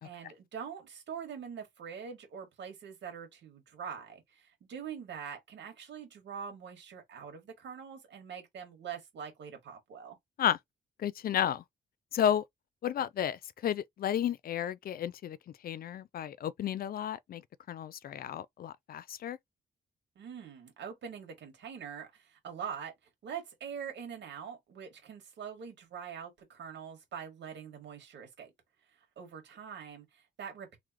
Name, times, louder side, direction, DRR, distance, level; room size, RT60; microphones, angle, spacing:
voice 1, 0.0-10.2 20.2-22.9 23.2-28.5 29.2-30.8, right 7 dB, 75° right, 2.0 m, -44 dB
voice 2, 11.0-11.6 12.1-12.4 12.8-15.4 15.6-17.4 17.7-19.4, left 10 dB, 55° left, 0.4 m, -32 dB
3.8 x 3.2 x 2.9 m
wide cardioid pair, 140°, 18 cm